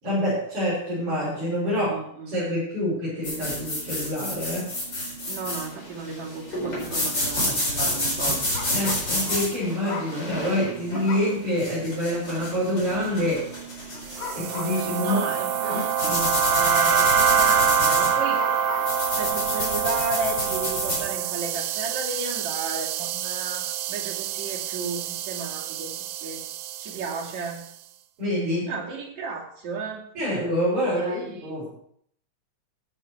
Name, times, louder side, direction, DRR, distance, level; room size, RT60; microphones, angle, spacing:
voice 1, 0.0-2.0 2.3-4.7 8.7-13.5 14.3-15.2 15.6-16.4 28.2-28.7 30.1-31.7, left 1 dB, 45° right, -11 dB, 7.5 m, -26 dB
voice 2, 1.7-2.3 5.3-8.4 14.8-18.4 19.1-26.0 26.2-26.4 26.8-27.6 28.7-30.0 30.8-31.5, right 4 dB, 65° right, -3 dB, 4.1 m, -34 dB
sound 1, 3.2-21.0, left 1 dB, 35° left, 5.1 m, -29 dB
sound 2, 8.5-10.2 11.1-11.4 12.0-12.1 13.9-14.9 15.5-15.6 17.4-17.5 18.0-19.0, left 5 dB, 90° left, 3.0 m, -37 dB
sound 3, 14.1-27.5, right 9 dB, 80° right, 2.1 m, -26 dB
15.5 x 9.0 x 4.7 m, 0.64 s
omnidirectional pair, 3.5 m